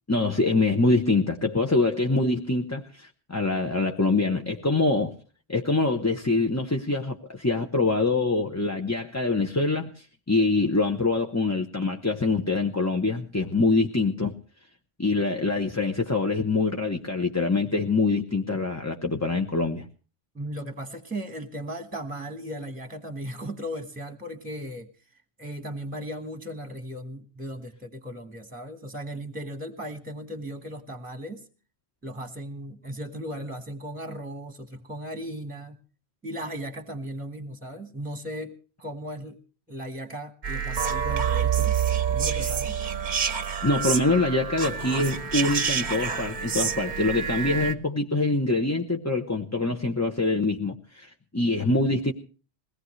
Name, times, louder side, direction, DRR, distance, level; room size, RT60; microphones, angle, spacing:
voice 1, 0.1-5.1 5.5-14.3 15.0-19.9 42.3-42.5 43.6-52.1, left 3 dB, 15° left, 3 dB, 0.8 m, -25 dB
voice 2, 20.3-24.9 25.4-31.5 32.0-35.8 36.2-39.4 39.7-41.7 42.1-42.8, equal, 5° right, 7 dB, 1.6 m, -37 dB
sound 1, 40.4-47.7, right 7 dB, 45° right, 1.0 m, -27 dB
21.5 x 18.0 x 3.2 m, 0.37 s
omnidirectional pair, 1.2 m